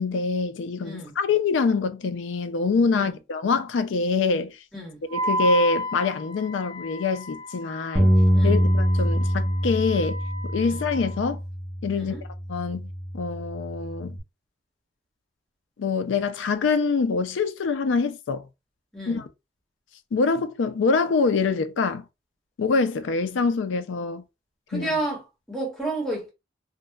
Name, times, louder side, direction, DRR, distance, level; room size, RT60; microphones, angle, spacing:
voice 1, 0.0-4.6 5.1-8.1 8.4-11.4 11.8-12.2 12.5-14.2 15.8-18.5 19.1-19.2 20.1-22.1 22.6-24.2 24.7-24.9, left 4 dB, 85° left, 0.4 m, -25 dB
voice 2, 0.8-1.1 2.9-3.1 4.7-5.0 8.3-8.6 10.6-10.8 11.9-12.2 18.9-19.2 24.7-26.3, right 2 dB, ahead, 1.0 m, -31 dB
Wind instrument woodwind instrument, 5.1-11.3, equal, 60° right, 1.0 m, -33 dB
Bass guitar, 8.0-14.2, equal, 15° right, 0.3 m, -24 dB
2.7 x 2.1 x 2.2 m
head